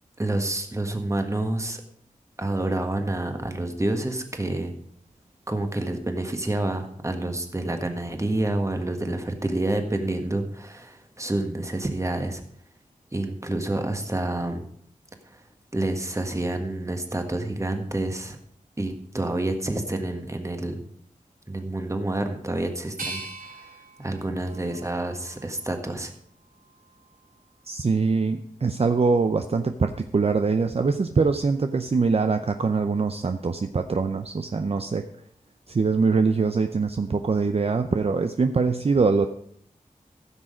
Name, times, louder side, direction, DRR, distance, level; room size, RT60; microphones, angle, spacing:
voice 1, 0.2-1.8 2.4-4.7 5.5-12.4 13.1-14.6 15.3-15.4 15.7-18.4 18.8-20.8 21.5-23.2 24.0-26.1, right 2 dB, 20° right, 5 dB, 1.6 m, -28 dB
sound 1, 23.0-25.9 26.4-27.3, right 2 dB, 90° right, 1.7 m, -41 dB
voice 2, 27.7-35.0 35.7-39.3, right 4 dB, 45° right, 7 dB, 0.6 m, -23 dB
15.0 x 6.3 x 5.0 m, 0.65 s
wide cardioid pair, 70°, 14 cm